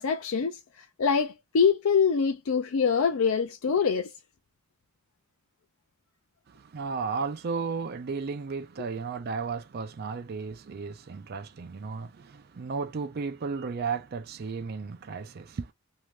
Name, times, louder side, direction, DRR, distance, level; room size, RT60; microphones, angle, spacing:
voice 1, 0.0-4.1, left 6 dB, 80° left, 0.4 m, -25 dB
voice 2, 6.5-15.7, right 5 dB, 50° right, 0.4 m, -34 dB
2.7 x 2.2 x 3.1 m
head